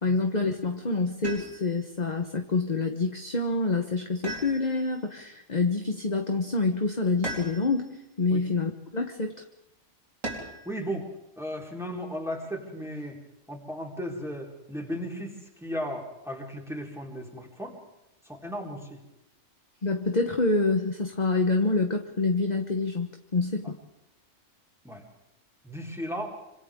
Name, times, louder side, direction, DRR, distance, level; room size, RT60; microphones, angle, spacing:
voice 1, 0.0-9.4 19.8-23.8, left 3 dB, 35° left, 4 dB, 1.3 m, -27 dB
sound 1, 1.2-1.9 4.2-5.0 7.2-7.9 10.2-10.8 12.4-13.1, right 1 dB, 70° right, 4.5 m, -38 dB
voice 2, 10.4-11.1 11.4-13.2 13.5-17.8 18.2-19.0 24.8-25.0 25.6-26.4, equal, ahead, -1 dB, 4.2 m, -35 dB
27.0 x 25.5 x 3.8 m, 0.93 s
omnidirectional pair, 1.4 m